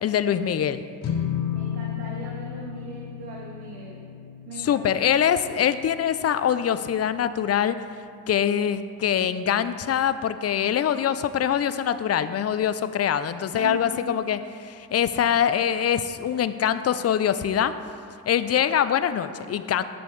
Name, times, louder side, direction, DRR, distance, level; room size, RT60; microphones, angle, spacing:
voice 1, 0.0-0.8 4.6-7.8 8.3-17.7 18.3-19.8, left 9 dB, 40° left, 12 dB, 0.4 m, -24 dB
sound 1, 1.0-7.5, left 9 dB, 80° left, 0.7 m, -34 dB
voice 2, 1.5-4.0 4.4-4.9 13.5-14.0, right 3 dB, 85° right, -2 dB, 1.0 m, -39 dB
8.6 x 6.8 x 3.2 m, 2.3 s
cardioid pair, 55°, 39 cm